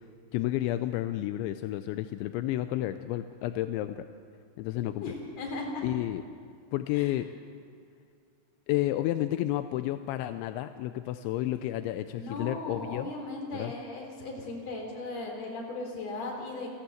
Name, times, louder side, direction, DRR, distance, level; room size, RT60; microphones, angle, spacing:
voice 1, 0.3-4.0 4.6-5.0 5.8-6.2 6.7-7.3 8.7-13.1 13.5-13.7, left 14 dB, 85° left, 10 dB, 2.6 m, -31 dB
voice 2, 5.0-5.9 6.9-7.1 12.1-16.7, left 2 dB, 35° left, 1 dB, 4.1 m, -37 dB
29.0 x 12.0 x 7.9 m, 2.3 s
omnidirectional pair, 5.9 m